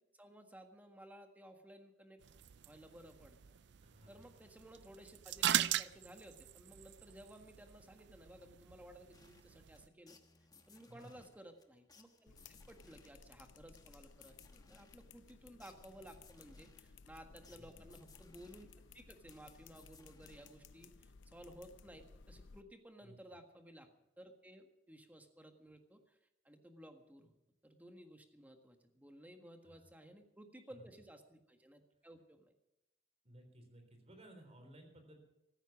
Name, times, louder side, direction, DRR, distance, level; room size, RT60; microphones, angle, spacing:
voice 1, 0.1-2.2 2.6-3.4 4.1-10.2 10.7-18.7 18.9-23.9 24.2-26.2 26.4-27.4 27.6-32.5, equal, 10° right, 5 dB, 1.6 m, -57 dB
sound 1, 2.2-9.9, right 11 dB, 70° right, 0.5 m, -41 dB
voice 2, 3.8-4.3 10.9-11.3 13.1-13.3 17.5-17.9 23.0-23.2 29.6-29.9 30.8-30.9 33.2-35.2, right 1 dB, 35° right, 6 dB, 3.8 m, -59 dB
sound 2, 9.1-21.3, left 4 dB, 20° left, 1.2 m, -66 dB
sound 3, 12.3-22.6, left 4 dB, 90° left, 0.7 m, -60 dB
14.5 x 14.0 x 6.0 m, 0.88 s
head